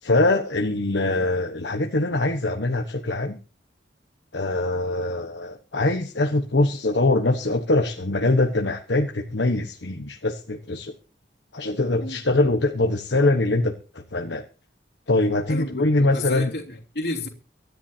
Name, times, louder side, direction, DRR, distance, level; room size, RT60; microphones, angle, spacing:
voice 1, 0.0-3.4 4.3-10.9 11.5-14.4 15.1-16.5, left 2 dB, 85° left, 1.2 m, -23 dB
voice 2, 15.5-17.3, left 2 dB, 65° left, 3.1 m, -31 dB
25.0 x 11.0 x 2.8 m
head